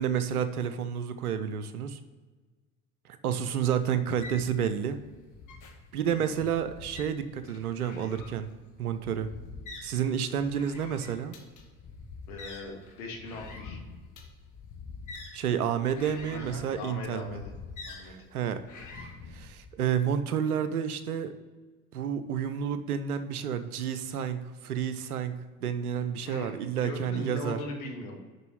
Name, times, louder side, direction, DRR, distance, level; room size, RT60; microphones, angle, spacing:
voice 1, 0.0-2.0 3.2-5.0 5.9-8.5 8.8-9.3 9.8-11.3 15.3-17.4 18.0-18.6 18.9-21.3 21.9-27.6, right 8 dB, 85° right, 11 dB, 0.6 m, -30 dB
sound 1, 4.2-19.7, left 4 dB, 45° left, 1.6 m, -46 dB
voice 2, 6.1-6.4 12.3-13.8 16.3-17.5 17.9-18.2 26.3-26.5 26.8-28.2, left 2 dB, 75° left, 2 dB, 1.6 m, -39 dB
6.7 x 5.4 x 6.3 m, 1.4 s
figure-of-eight pair, 60°, 43 cm